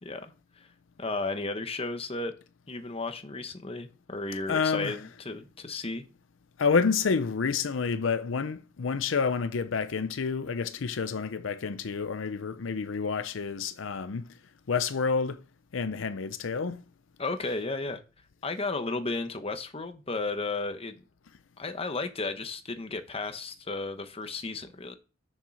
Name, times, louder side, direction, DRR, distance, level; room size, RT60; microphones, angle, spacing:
voice 1, 0.0-0.7 1.0-2.3 2.7-6.1 17.2-18.0 18.4-21.0 21.6-25.0, left 3 dB, 30° left, 1.0 m, -34 dB
voice 2, 4.5-5.0 6.6-14.4 14.7-15.4 15.7-16.8, left 5 dB, 75° left, 0.5 m, -29 dB
7.4 x 6.6 x 6.2 m
head